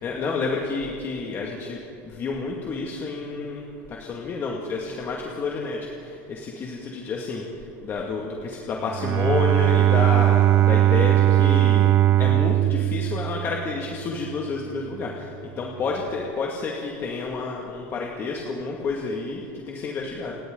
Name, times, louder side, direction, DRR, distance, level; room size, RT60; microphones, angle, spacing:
voice 1, 0.0-7.4 7.8-11.9 12.2-20.4, left 4 dB, 30° left, -1 dB, 2.1 m, -30 dB
Bowed string instrument, 8.9-13.9, right 13 dB, 30° right, 0.4 m, -19 dB
28.5 x 24.0 x 3.9 m, 2.6 s
supercardioid pair, 145°, 7 cm